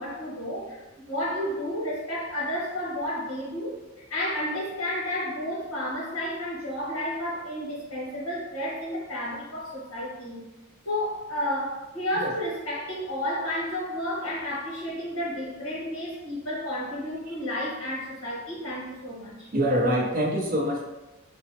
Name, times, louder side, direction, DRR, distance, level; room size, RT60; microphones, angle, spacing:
voice 1, 0.0-3.8 4.1-10.4 10.8-19.5, left 1 dB, 80° left, -5 dB, 1.3 m, -31 dB
voice 2, 19.5-20.8, equal, 40° right, -1 dB, 0.5 m, -25 dB
3.8 x 2.1 x 2.8 m, 1.0 s
head